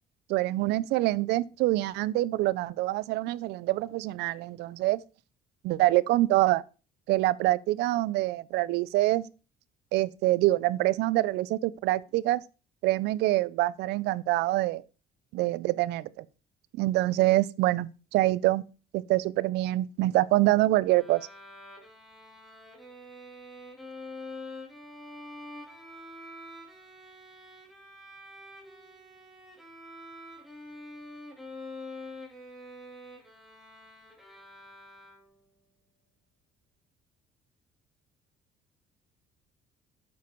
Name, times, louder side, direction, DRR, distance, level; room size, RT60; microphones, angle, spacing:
voice 1, 0.3-5.0 5.6-6.6 7.1-9.3 9.9-12.4 12.8-14.8 15.3-16.2 16.8-18.6 18.9-21.3, right 17 dB, 85° right, 0.6 m, -25 dB
Bowed string instrument, 20.9-35.5, left 2 dB, ahead, 2.9 m, -46 dB
9.1 x 7.4 x 4.6 m
cardioid pair, 110°, 17 cm